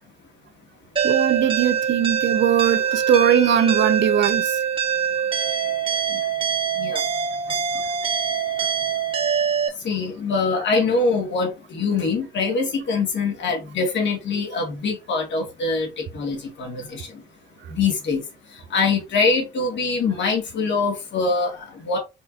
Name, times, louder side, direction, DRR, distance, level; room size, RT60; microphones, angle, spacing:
sound 1, 1.0-9.7, right 7 dB, 25° right, 1.6 m, -23 dB
voice 1, 1.0-4.4, right 9 dB, 65° right, 0.7 m, -20 dB
voice 2, 9.8-17.1 17.7-18.2 18.7-22.0, left 4 dB, 65° left, 2.5 m, -24 dB
4.6 x 4.3 x 2.7 m
cardioid pair, 90°, 20 cm